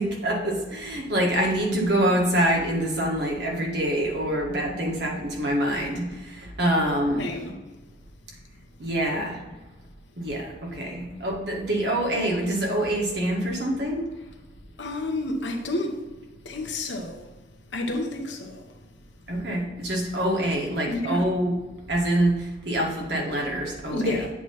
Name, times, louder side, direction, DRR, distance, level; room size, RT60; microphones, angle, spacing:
voice 1, 0.0-7.2 8.8-9.4 10.2-14.1 19.3-21.5 21.9-24.2, right 1 dB, 60° right, 1.7 m, -25 dB
voice 2, 7.2-7.6 14.8-16.1 16.4-17.2 17.7-18.6 20.8-21.3 23.9-24.3, left 1 dB, 85° left, 1.1 m, -30 dB
8.2 x 3.2 x 5.6 m
head